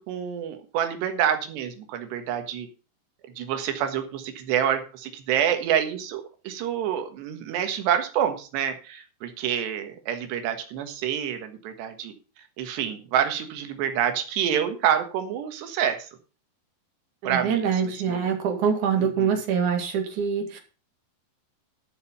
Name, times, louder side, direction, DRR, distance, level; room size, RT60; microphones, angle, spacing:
voice 1, 0.1-2.7 3.4-12.1 12.6-16.1 17.3-18.4 19.0-19.4, right 9 dB, 85° right, 7 dB, 3.7 m, -27 dB
voice 2, 17.2-20.6, right 7 dB, 55° right, 4 dB, 3.2 m, -25 dB
12.0 x 7.2 x 5.5 m, 0.37 s
omnidirectional pair, 4.8 m